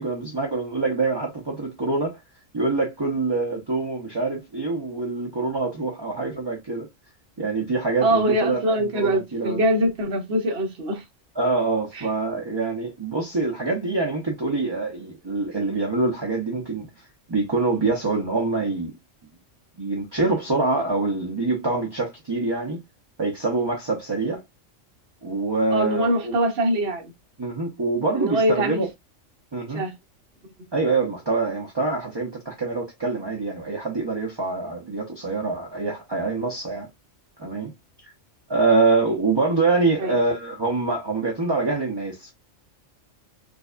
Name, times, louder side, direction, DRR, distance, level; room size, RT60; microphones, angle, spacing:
voice 1, 0.0-2.2 2.5-6.9 7.4-9.6 11.4-18.9 19.8-22.8 23.2-24.4 25.2-26.4 27.4-28.9 29.5-29.8 30.7-36.9 37.4-37.7 38.0-38.1 38.5-42.3, right 3 dB, 25° right, 0.6 m, -25 dB
voice 2, 8.0-11.0 11.9-12.1 25.7-27.1 28.1-28.8 29.7-29.9 40.0-40.2, right 1 dB, 55° right, 1.1 m, -23 dB
4.9 x 2.3 x 2.4 m
omnidirectional pair, 1.3 m